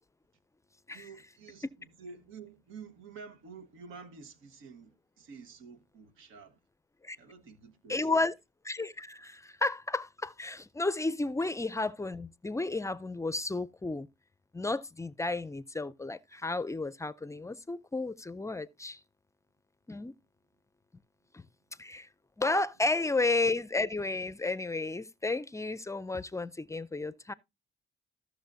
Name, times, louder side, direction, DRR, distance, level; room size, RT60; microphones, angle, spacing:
voice 1, 0.9-6.6 7.2-8.1, right 5 dB, 90° right, 1.4 m, -50 dB
voice 2, 7.9-8.3 8.6-14.1 14.5-19.0 19.9-20.1 21.3-21.5 21.8-22.1 22.4-27.3, left 2 dB, 15° left, 0.4 m, -32 dB
15.0 x 6.2 x 2.6 m
cardioid pair, 90°, 20 cm